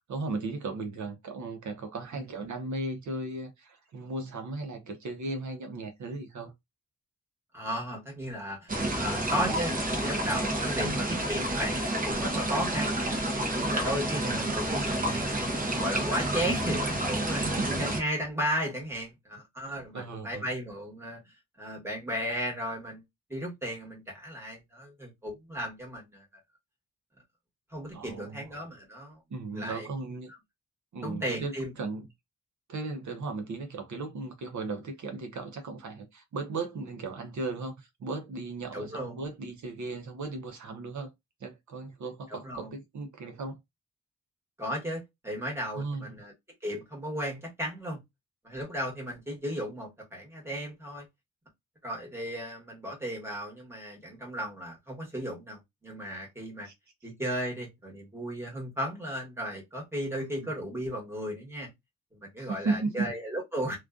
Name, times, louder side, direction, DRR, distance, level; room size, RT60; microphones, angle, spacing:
voice 1, 0.0-6.5 10.8-11.1 14.1-14.5 17.4-17.7 19.9-20.4 27.9-28.5 29.3-30.3 30.9-32.1 32.7-41.1 41.4-43.6 45.7-46.2 56.6-56.7 60.2-60.5 62.4-63.1, right 3 dB, 75° right, 0.6 m, -36 dB
voice 2, 7.5-13.2 13.5-15.4 15.7-17.4 17.7-21.2 21.6-23.0 23.3-26.2 27.7-29.2 29.5-29.9 31.0-31.7 38.7-39.2 42.3-42.7 44.6-46.3 46.6-48.0 48.4-51.0 51.8-56.7 57.0-61.7 62.1-63.8, equal, 10° right, 1.1 m, -35 dB
sound 1, 8.7-18.0, right 1 dB, 30° right, 0.6 m, -29 dB
2.5 x 2.2 x 2.4 m
wide cardioid pair, 165°, 30 cm